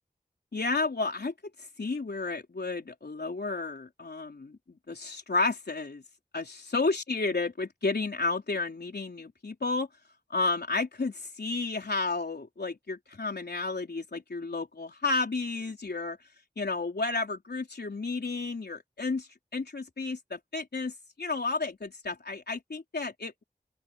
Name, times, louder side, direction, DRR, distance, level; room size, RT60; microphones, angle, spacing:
voice 1, 0.5-1.3 1.6-6.0 6.3-9.9 10.3-16.2 16.6-23.4, left 3 dB, 85° left, 4.0 m, -32 dB
open air
wide cardioid pair, 65°, 16 cm